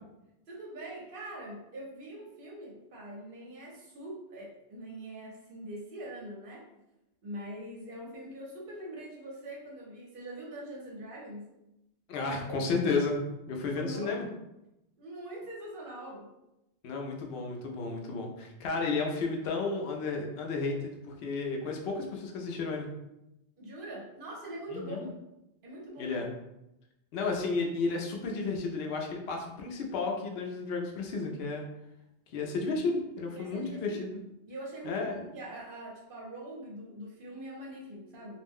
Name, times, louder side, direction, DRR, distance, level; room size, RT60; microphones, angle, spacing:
voice 1, 0.5-6.6 7.2-11.5 12.2-12.7 13.7-14.3 15.0-16.3 23.6-25.1 25.6-26.2 33.3-34.0 34.5-38.4, right 1 dB, 55° right, -2 dB, 0.9 m, -43 dB
voice 2, 12.1-13.2 13.5-14.3 16.8-22.9 24.7-25.0 26.0-26.3 27.1-31.6 32.3-34.2 34.8-35.2, left 4 dB, 65° left, 1 dB, 0.8 m, -32 dB
2.5 x 2.1 x 3.4 m, 0.89 s
omnidirectional pair, 1.2 m